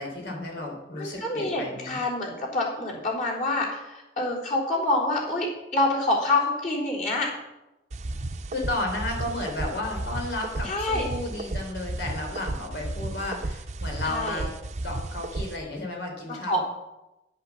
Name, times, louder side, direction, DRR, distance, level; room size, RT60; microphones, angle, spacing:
voice 1, 0.0-2.0 8.5-14.5 14.8-16.6, left 2 dB, 85° left, 1 dB, 3.6 m, -33 dB
voice 2, 0.9-5.5 5.7-7.3 10.6-11.1 14.0-14.4 16.3-16.6, left 2 dB, 45° left, -4 dB, 3.8 m, -27 dB
sound 1, 7.9-15.6, right 2 dB, 40° right, 0.6 m, -33 dB
9.9 x 8.1 x 7.2 m, 0.95 s
head